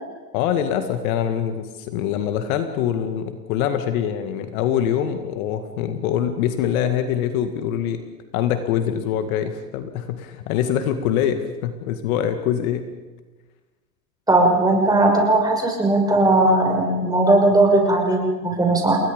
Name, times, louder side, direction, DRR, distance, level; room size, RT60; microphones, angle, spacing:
voice 1, 0.3-8.0 8.3-12.8, left 9 dB, 55° left, 8 dB, 2.2 m, -24 dB
voice 2, 14.3-19.0, right 2 dB, 10° right, 1 dB, 6.4 m, -18 dB
30.0 x 21.0 x 5.3 m, 1.2 s
hypercardioid pair, 120°, 49 cm